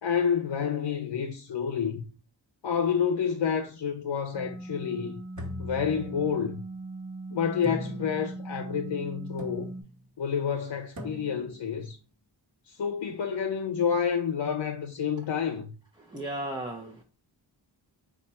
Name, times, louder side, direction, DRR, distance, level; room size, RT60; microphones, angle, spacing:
voice 1, 0.0-2.0 2.6-5.2 5.6-6.6 7.3-9.7 10.2-12.0 12.7-15.7, left 7 dB, 65° left, 0.6 m, -29 dB
sound 1, 4.3-9.8, right 2 dB, 85° right, 1.2 m, -40 dB
sound 2, 5.3-6.6 7.6-8.4 9.4-10.0 11.0-11.6, left 1 dB, 40° right, 1.2 m, -40 dB
voice 2, 16.1-17.0, right 1 dB, 10° right, 0.7 m, -35 dB
4.2 x 2.4 x 4.2 m
cardioid pair, 40°, 47 cm